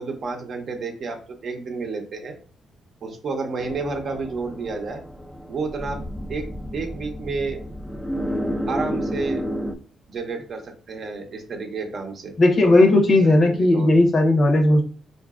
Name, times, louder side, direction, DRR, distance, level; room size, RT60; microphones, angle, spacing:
voice 1, 0.0-2.4 3.0-5.0 5.5-6.0 6.3-7.6 8.7-9.5 10.1-12.3 12.8-14.0, right 4 dB, 55° right, 4 dB, 0.7 m, -31 dB
sound 1, 3.6-9.7, equal, ahead, 0.4 m, -31 dB
voice 2, 12.4-14.8, left 2 dB, 45° left, 4 dB, 0.8 m, -16 dB
3.9 x 2.5 x 2.3 m, 0.39 s
cardioid pair, 90°, 0 cm